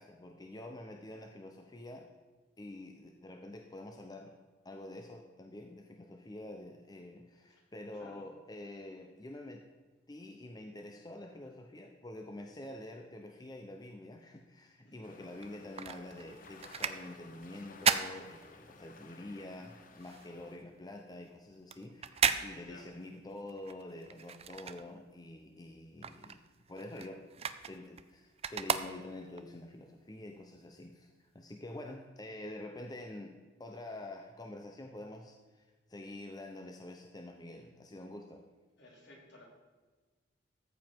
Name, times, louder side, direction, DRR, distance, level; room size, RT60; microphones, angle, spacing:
voice 1, 0.0-2.1 2.6-4.4 4.6-9.6 10.1-26.4 26.7-27.2 27.7-33.3 33.6-35.4 35.9-38.4, left 1 dB, 20° left, 3 dB, 0.7 m, -47 dB
voice 2, 7.9-8.3 14.8-15.1 22.6-23.0 38.8-39.4, left 1 dB, 65° left, -2 dB, 3.3 m, -56 dB
sound 1, 15.0-20.6, left 4 dB, 45° left, 0.9 m, -56 dB
sound 2, 15.3-19.0 19.4-25.4 25.7-29.5 30.0-30.1, right 7 dB, 35° right, 0.5 m, -36 dB
14.0 x 7.5 x 4.5 m, 1.3 s
head